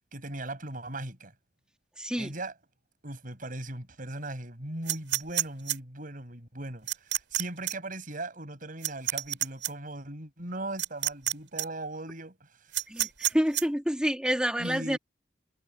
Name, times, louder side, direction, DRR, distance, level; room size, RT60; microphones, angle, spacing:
voice 1, 0.1-1.3 2.2-2.5 3.0-12.7 14.6-15.0, right 2 dB, 50° right, 5.9 m, -39 dB
voice 2, 2.0-2.3 12.9-15.0, equal, 5° right, 1.9 m, -28 dB
sound 1, 4.9-5.8 6.9-7.4 7.7-7.8 8.8-9.7 10.8-11.3 11.6-11.7 12.7-13.6, right 13 dB, 90° right, 7.2 m, -28 dB
head